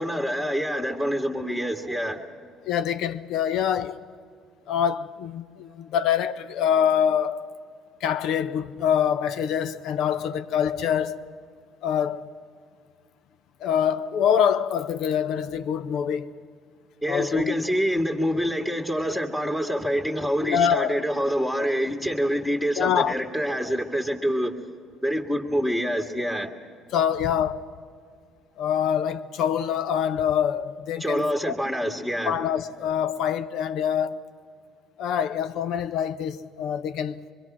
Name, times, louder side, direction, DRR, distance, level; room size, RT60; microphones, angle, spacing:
voice 1, 0.0-2.2 17.0-24.5 25.0-26.5 31.0-32.3, equal, 15° left, 2.0 m, -26 dB
voice 2, 2.7-4.0 4.7-7.5 8.0-11.2 11.8-12.3 13.6-16.4 17.1-17.5 20.4-21.0 22.8-23.1 26.9-27.6 28.6-31.5 32.3-34.2 35.0-37.2, left 8 dB, 70° left, 0.7 m, -25 dB
24.5 x 22.5 x 6.1 m
supercardioid pair, 80°, 0 cm